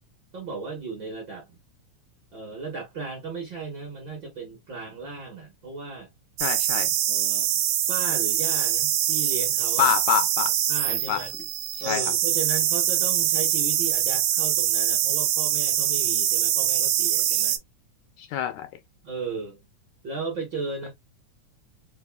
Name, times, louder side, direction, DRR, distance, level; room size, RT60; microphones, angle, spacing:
voice 1, 0.3-1.6 2.3-6.1 7.1-7.5 7.9-9.9 10.7-11.3 11.8-17.6 19.0-19.6 20.0-20.9, right 4 dB, 60° right, 1.2 m, -35 dB
voice 2, 6.4-6.9 9.8-10.5 10.9-11.2 11.9-12.1 17.3-17.4 18.2-18.7, left 11 dB, 80° left, 1.8 m, -26 dB
sound 1, 6.4-17.6, right 11 dB, 80° right, 2.0 m, -24 dB
4.7 x 2.5 x 2.2 m
omnidirectional pair, 3.6 m